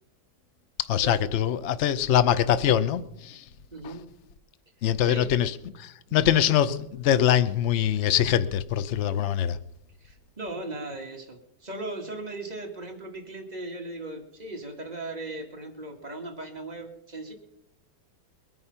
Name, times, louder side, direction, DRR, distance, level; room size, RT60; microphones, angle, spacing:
voice 1, 0.9-3.4 3.8-3.9 4.8-5.5 5.8-9.6, left 10 dB, 80° left, 0.6 m, -23 dB
voice 2, 3.7-4.1 5.0-5.3 10.0-17.3, right 2 dB, 20° right, 2.3 m, -37 dB
21.5 x 9.5 x 5.5 m
omnidirectional pair, 2.1 m